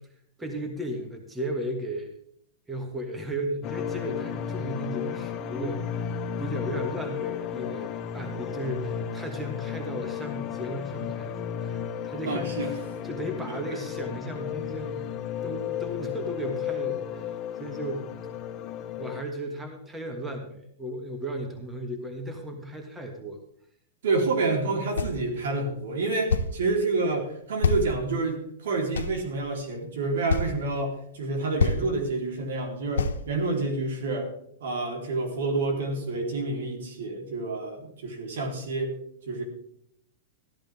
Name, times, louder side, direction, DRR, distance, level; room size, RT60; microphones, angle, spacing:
voice 1, 0.4-2.1 2.7-6.0 6.4-15.1 15.4-18.1 19.0-23.4, right 1 dB, 10° right, 4 dB, 1.6 m, -35 dB
sound 1, 3.6-19.2, left 8 dB, 35° left, 0.6 m, -34 dB
voice 2, 12.3-12.7 13.5-13.6 24.0-34.3 34.6-38.9 39.3-39.4, right 3 dB, 80° right, 3 dB, 3.5 m, -28 dB
sound 2, 25.0-25.2 26.3-26.6 27.6-28.4 28.9-29.6 30.3-30.5 31.2-31.3 31.6-31.8 33.0-33.2, left 4 dB, 90° left, 0.9 m, -26 dB
14.0 x 12.5 x 3.5 m, 0.70 s
hypercardioid pair, 140°, 0 cm